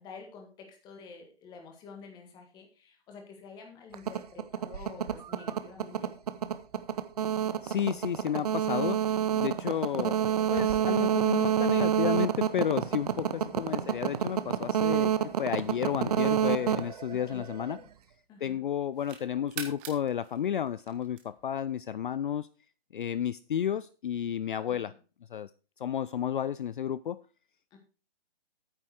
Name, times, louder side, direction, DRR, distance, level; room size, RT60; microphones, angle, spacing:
voice 1, 0.0-6.1 13.3-13.6 17.1-17.9 18.3-18.6 24.7-25.0 27.7-27.8, left 5 dB, 15° left, 3 dB, 1.7 m, -49 dB
sound 1, 3.9-17.8, right 9 dB, 40° right, 0.7 m, -28 dB
voice 2, 7.6-10.2 10.5-17.8 18.4-22.5 22.9-24.9 25.3-25.5 25.8-27.2, left 9 dB, 55° left, 18 dB, 0.4 m, -32 dB
sound 2, 17.4-18.2 18.7-21.6, right 8 dB, 15° right, 0.9 m, -45 dB
9.0 x 7.6 x 4.7 m, 0.35 s
hypercardioid pair, 155°, 31 cm